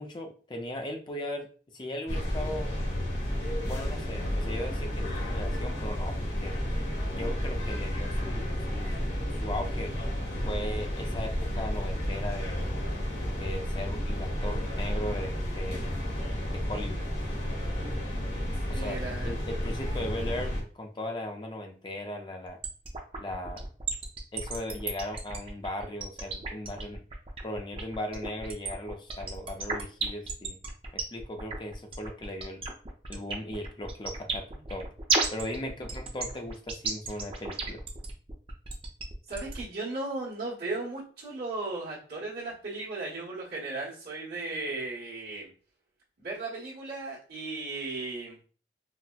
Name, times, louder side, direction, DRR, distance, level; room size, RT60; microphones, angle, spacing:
voice 1, 0.0-1.5 1.7-2.7 3.7-6.6 7.1-9.0 9.4-9.9 10.5-12.6 13.4-15.9 16.5-17.1 18.7-22.6 23.2-23.6 24.3-27.0 27.4-30.6 30.9-32.6 33.1-34.9 35.3-37.8, left 1 dB, 25° left, 3 dB, 0.4 m, -38 dB
sound 1, 2.1-20.6, equal, 65° left, 1.1 m, -31 dB
voice 2, 18.7-19.3 39.3-45.5 46.2-48.4, right 2 dB, 60° right, -8 dB, 1.1 m, -36 dB
sound 2, 22.6-39.6, right 4 dB, 30° right, 0.5 m, -33 dB
4.0 x 2.1 x 2.2 m, 0.40 s
head